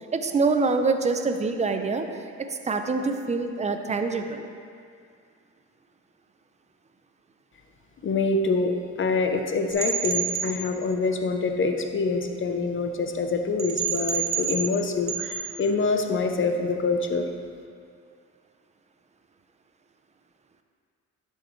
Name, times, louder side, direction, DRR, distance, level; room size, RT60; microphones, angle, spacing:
voice 1, 0.1-2.0 2.7-4.5, right 4 dB, 25° right, 6 dB, 0.6 m, -25 dB
voice 2, 8.0-17.3, left 3 dB, 40° left, 5 dB, 0.7 m, -25 dB
sound 1, 9.7-10.5 13.6-14.8 15.1-15.4, right 6 dB, 45° right, 1.5 m, -28 dB
11.0 x 6.5 x 3.2 m, 2.3 s
cardioid pair, 90°, 30 cm